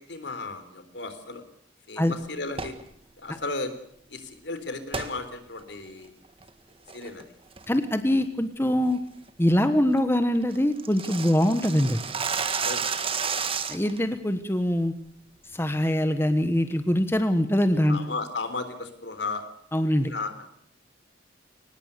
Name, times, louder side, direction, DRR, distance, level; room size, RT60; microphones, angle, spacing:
voice 1, 0.0-1.4 1.9-2.8 3.2-3.7 4.1-6.1 6.9-7.2 12.6-12.9 13.4-13.5 17.9-19.4 20.0-20.5, left 3 dB, 70° left, 9 dB, 3.8 m, -34 dB
sound 1, 2.5-2.8 4.9-5.1 5.6-5.7 6.2-6.5 6.9-7.2 7.6-7.8 8.2-8.3 8.7-8.9 9.3-9.4 9.7-9.8 10.0-10.1 10.3-14.0, right 6 dB, 30° right, 1.7 m, -31 dB
voice 2, 7.7-9.0 9.4-12.0 13.7-14.9 15.5-18.0 19.7-20.1, left 1 dB, 15° left, 9 dB, 1.2 m, -23 dB
23.5 x 19.5 x 6.8 m, 0.71 s
head